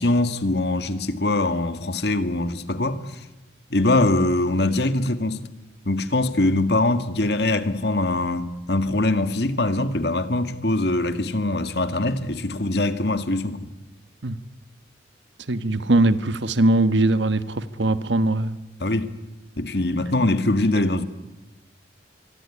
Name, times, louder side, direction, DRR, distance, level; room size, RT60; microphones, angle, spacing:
voice 1, 0.0-3.0 3.7-5.4 5.9-13.7 18.8-19.1 19.6-21.1, left 2 dB, 60° left, 1.8 m, -22 dB
voice 2, 15.5-18.6, right 2 dB, 80° right, 1.4 m, -21 dB
24.5 x 24.0 x 10.0 m
head